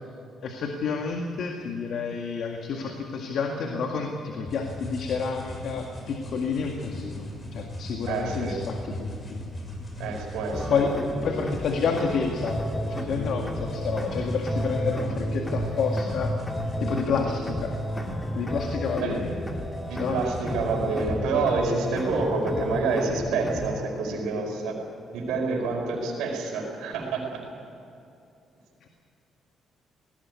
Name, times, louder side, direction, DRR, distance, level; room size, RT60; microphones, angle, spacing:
voice 1, 0.4-9.4 10.7-16.3 16.8-17.8 18.4-19.3 20.0-20.2, left 5 dB, 70° left, 2 dB, 1.9 m, -29 dB
sound 1, 4.4-21.2, left 1 dB, 35° left, 7.0 m, -39 dB
voice 2, 8.1-8.6 10.0-10.8 19.0-19.2 19.9-24.7 25.1-27.3, right 4 dB, 90° right, 1 dB, 5.0 m, -28 dB
sound 2, 10.5-23.7, equal, 10° left, 2.3 m, -32 dB
19.0 x 16.0 x 9.7 m, 2.6 s
cardioid pair, 90°, 0 cm